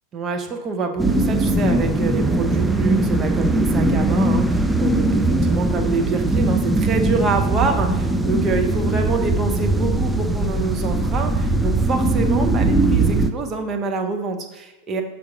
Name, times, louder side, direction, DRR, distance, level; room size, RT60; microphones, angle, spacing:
voice 1, 0.1-15.0, right 4 dB, 25° right, 3 dB, 0.7 m, -26 dB
sound 1, 1.0-13.3, right 2 dB, 5° right, 0.3 m, -20 dB
6.0 x 3.6 x 5.0 m, 1.0 s
figure-of-eight pair, 90°, 0 cm